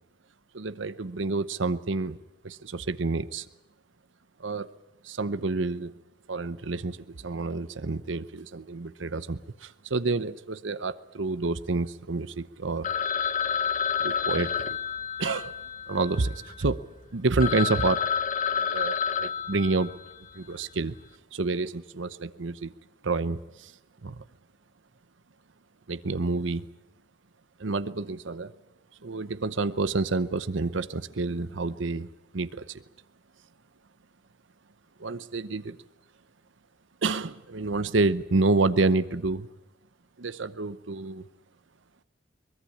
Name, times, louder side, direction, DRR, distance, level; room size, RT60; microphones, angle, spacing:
voice 1, 0.5-2.2 2.4-3.5 4.4-4.7 5.0-5.9 6.3-12.9 14.0-14.8 15.2-15.6 15.9-16.8 17.1-18.0 18.5-19.9 20.3-21.0 21.3-22.7 23.0-23.7 24.0-24.2 25.9-26.7 27.6-28.5 29.0-32.1 32.3-32.8 35.0-35.8 37.0-39.5 40.2-41.3, right 3 dB, 80° right, 13 dB, 0.8 m, -28 dB
Telephone, 12.8-16.6 17.1-17.2 17.4-20.3, left 7 dB, 40° left, 1.0 m, -29 dB
23.0 x 21.5 x 8.6 m, 0.94 s
head